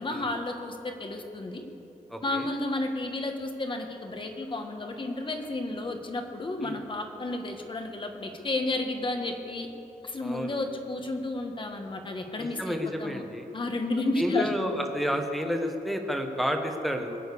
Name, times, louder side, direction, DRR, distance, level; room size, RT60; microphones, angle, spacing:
voice 1, 0.0-1.6 2.2-9.7 10.0-13.2 13.5-14.5, left 2 dB, 35° left, 4 dB, 1.4 m, -32 dB
voice 2, 2.1-2.5 6.6-6.8 10.2-10.5 12.4-13.5 14.2-17.2, equal, ahead, 4 dB, 1.2 m, -30 dB
22.0 x 9.1 x 6.9 m, 2.8 s
wide cardioid pair, 170°, 15 cm